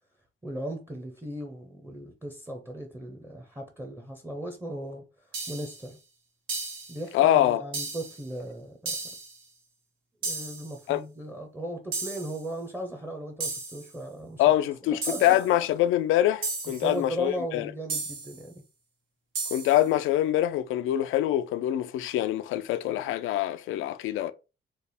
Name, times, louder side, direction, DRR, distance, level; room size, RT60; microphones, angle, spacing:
voice 1, 0.4-5.1 5.5-6.0 6.9-9.0 10.2-14.4 14.9-15.6 16.8-18.6, right 1 dB, 10° right, 0.7 m, -37 dB
sound 1, 5.3-5.8 6.5-7.0 7.7-8.2 8.9-9.4 10.2-10.8 11.9-12.4 13.4-13.9 15.0-15.5 16.4-16.9 17.9-18.4 19.3-19.9, right 3 dB, 80° right, 1.3 m, -34 dB
voice 2, 7.1-7.6 10.9-11.0 14.4-17.7 19.5-24.3, left 13 dB, 85° left, 0.4 m, -24 dB
3.3 x 2.1 x 4.1 m
cardioid pair, 90°, 20 cm